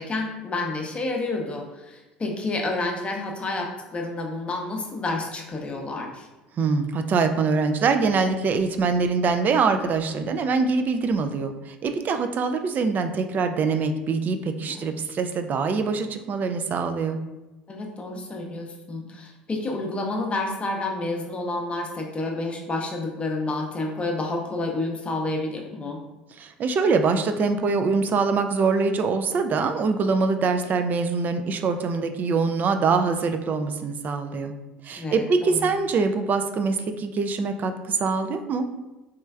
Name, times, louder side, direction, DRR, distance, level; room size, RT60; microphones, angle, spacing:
voice 1, 0.0-6.3 14.8-14.9 17.7-26.0 34.9-35.7, left 2 dB, 25° left, 1 dB, 0.7 m, -29 dB
voice 2, 6.6-17.2 26.4-34.5 34.8-38.7, right 4 dB, 40° right, 8 dB, 0.3 m, -24 dB
3.2 x 3.1 x 2.3 m, 1.1 s
hypercardioid pair, 70°, 5 cm